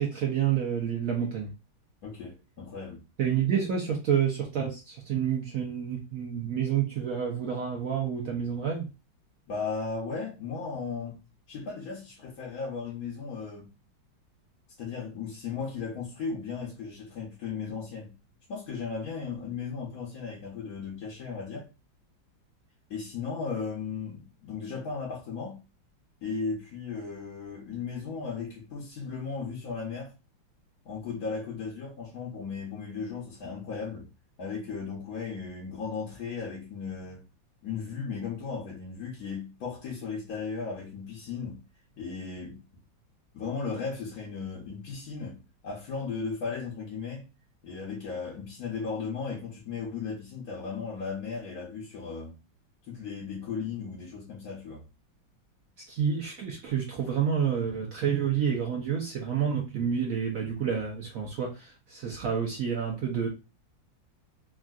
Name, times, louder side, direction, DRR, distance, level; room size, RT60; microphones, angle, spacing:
voice 1, 0.0-1.5 3.2-8.9 55.9-63.3, right 8 dB, 75° right, 0.7 m, -29 dB
voice 2, 2.0-3.0 9.5-11.2 11.5-13.7 14.8-18.2 18.5-21.7 22.9-25.6 26.2-30.1 30.8-34.1 34.4-37.3 37.6-41.5 42.0-42.6 43.3-47.2 47.6-52.3 52.9-54.8, left 5 dB, 60° left, 1.1 m, -36 dB
3.5 x 2.4 x 2.3 m
omnidirectional pair, 2.1 m